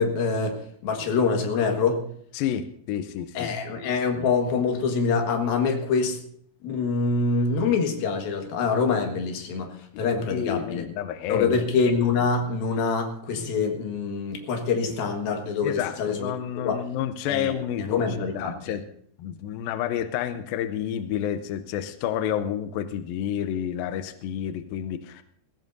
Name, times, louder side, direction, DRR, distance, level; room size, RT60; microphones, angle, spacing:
voice 1, 0.0-2.0 3.3-6.2 6.6-10.8 11.3-16.3 16.6-16.8 17.3-17.5 17.8-18.8, left 5 dB, 65° left, 4 dB, 3.2 m, -25 dB
voice 2, 2.3-3.5 9.9-11.6 15.6-18.8 19.2-25.2, left 10 dB, 85° left, 10 dB, 2.1 m, -30 dB
21.0 x 16.0 x 2.7 m, 0.63 s
omnidirectional pair, 5.0 m